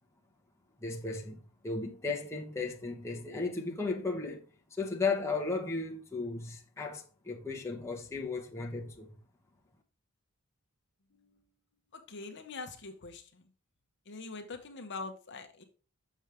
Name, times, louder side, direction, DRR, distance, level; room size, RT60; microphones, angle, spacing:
voice 1, 0.8-4.4 4.8-9.1, left 3 dB, 15° left, 1.0 m, -35 dB
voice 2, 11.1-11.5 11.9-13.5 14.1-15.6, left 3 dB, 55° left, 0.9 m, -44 dB
6.6 x 6.2 x 3.5 m
head